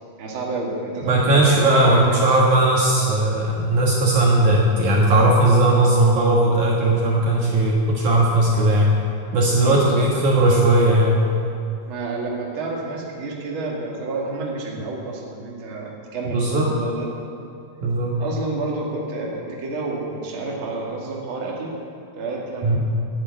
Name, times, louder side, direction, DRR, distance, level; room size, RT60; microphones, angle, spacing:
voice 1, 0.2-2.4 9.6-10.1 11.9-17.1 18.2-21.7 22.1-22.8, right 3 dB, 40° right, -2 dB, 2.3 m, -29 dB
voice 2, 1.1-8.9 9.3-11.2 16.3-16.7 17.8-18.1 22.6-22.8, right 1 dB, 60° right, -3 dB, 2.6 m, -17 dB
11.0 x 10.0 x 9.5 m, 2.7 s
omnidirectional pair, 4.5 m